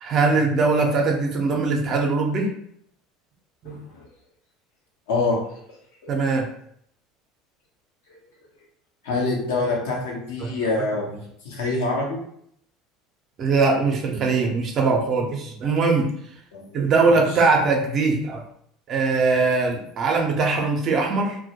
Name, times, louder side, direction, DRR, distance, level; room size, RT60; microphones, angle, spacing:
voice 1, 0.0-2.5 3.6-3.8 6.1-6.5 10.4-11.1 13.4-16.1 16.7-18.4 18.9-21.4, right 4 dB, 45° right, 2 dB, 0.5 m, -21 dB
voice 2, 3.6-4.0 5.1-5.4 8.1-8.2 9.0-11.0 11.4-12.2 16.5-17.2, left 3 dB, 75° left, -2 dB, 0.8 m, -26 dB
2.2 x 2.1 x 2.8 m, 0.69 s
hypercardioid pair, 80°, 0 cm